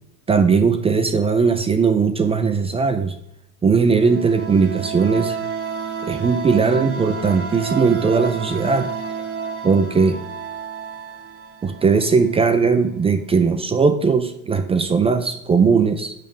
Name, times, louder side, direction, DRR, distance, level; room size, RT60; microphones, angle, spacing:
voice 1, 0.3-3.2 3.6-5.4 6.0-8.9 9.6-10.2 11.6-16.1, right 5 dB, 15° right, 8 dB, 0.3 m, -18 dB
sound 1, 3.9-12.5, right 5 dB, 30° right, 0.8 m, -30 dB
6.5 x 5.3 x 5.3 m, 0.83 s
hypercardioid pair, 100°, 46 cm